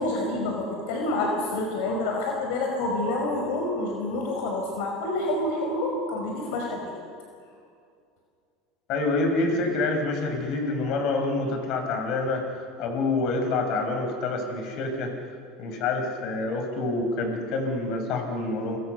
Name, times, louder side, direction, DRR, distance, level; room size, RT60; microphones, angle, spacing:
voice 1, 0.0-6.8, left 2 dB, 70° left, 1 dB, 5.4 m, -28 dB
voice 2, 8.9-15.1 15.6-18.8, left 3 dB, 55° left, 4 dB, 6.4 m, -27 dB
29.0 x 27.0 x 6.8 m, 2.3 s
supercardioid pair, 110°, 0 cm